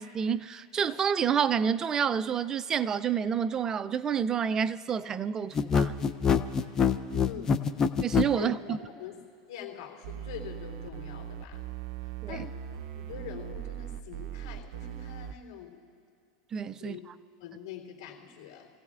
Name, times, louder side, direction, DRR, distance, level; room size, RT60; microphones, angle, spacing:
voice 1, 0.0-6.0 8.0-8.8 12.2-12.3 16.5-17.0, right 7 dB, 25° right, 0.3 m, -29 dB
sound 1, 5.5-8.3, left 6 dB, 25° left, 0.6 m, -24 dB
voice 2, 7.2-7.6 8.3-11.7 12.0-12.5 12.9-15.8 16.8-17.0 17.4-18.7, left 9 dB, 80° left, 3.3 m, -44 dB
sound 2, 10.0-15.3, right 10 dB, 70° right, 0.6 m, -40 dB
28.5 x 16.5 x 2.4 m
supercardioid pair, 130°, 2 cm